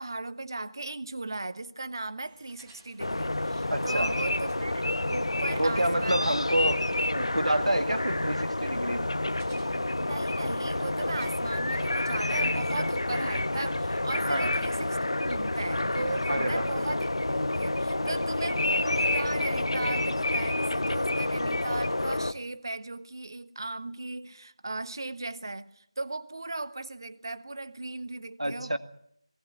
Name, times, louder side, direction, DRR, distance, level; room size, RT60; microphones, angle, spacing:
voice 1, 0.0-6.3 9.9-28.8, right 2 dB, 45° right, 14 dB, 1.2 m, -37 dB
sound 1, 2.2-14.9, right 2 dB, 5° right, 2.4 m, -59 dB
sound 2, 3.0-22.3, left 1 dB, 60° left, 1.2 m, -29 dB
voice 2, 3.7-4.2 5.5-6.8 7.1-9.3 14.3-14.5 16.3-16.9 28.4-28.8, right 1 dB, 80° right, 9 dB, 2.0 m, -28 dB
19.5 x 19.0 x 8.4 m, 0.68 s
figure-of-eight pair, 170°, 3 cm